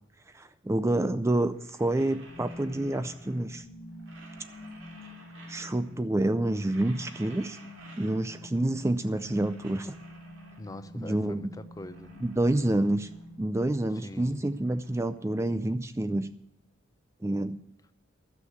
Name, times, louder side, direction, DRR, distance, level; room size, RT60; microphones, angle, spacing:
voice 1, 0.3-3.7 5.5-7.6 8.0-9.9 11.0-11.5 12.2-13.1 13.4-16.3 17.2-17.6, right 1 dB, 15° right, 0.4 m, -28 dB
sound 1, 1.5-3.6 3.9-6.1 6.4-8.6 8.9-11.0 11.4-13.4 13.7-15.9, right 3 dB, 75° right, 3.4 m, -54 dB
sound 2, 2.3-14.3, left 1 dB, 60° left, 2.0 m, -47 dB
voice 2, 10.6-12.1 14.0-14.4, left 1 dB, 20° left, 0.7 m, -43 dB
12.5 x 6.6 x 9.5 m
head